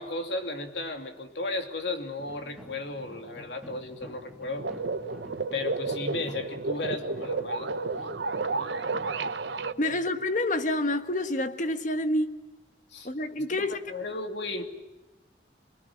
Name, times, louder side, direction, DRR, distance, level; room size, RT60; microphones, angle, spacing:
voice 1, 0.0-4.7 5.5-7.7 8.6-9.2 12.9-13.1 13.5-14.6, left 2 dB, 70° left, 5 dB, 2.8 m, -35 dB
sound 1, 2.2-11.0, right 1 dB, 5° right, 2.1 m, -49 dB
sound 2, 4.6-9.7, right 3 dB, 75° right, 1.1 m, -31 dB
voice 2, 9.8-12.4 13.0-13.8, left 1 dB, 45° left, 9 dB, 1.5 m, -28 dB
28.0 x 20.5 x 10.0 m, 1.1 s
head